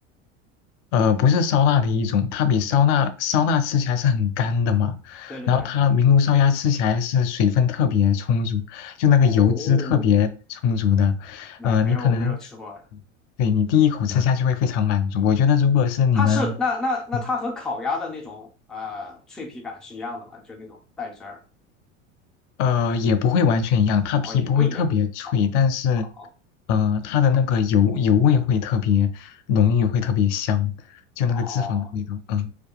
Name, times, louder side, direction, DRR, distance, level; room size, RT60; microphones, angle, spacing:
voice 1, 0.9-12.4 13.4-16.5 22.6-26.1 26.7-32.5, left 7 dB, 70° left, 0.5 m, -20 dB
voice 2, 5.3-5.7 9.2-10.0 11.6-12.8 16.1-21.4 24.2-24.8 26.2-26.3 31.3-31.9, left 3 dB, ahead, 0.4 m, -31 dB
2.7 x 2.3 x 2.2 m
hypercardioid pair, 95°, 38 cm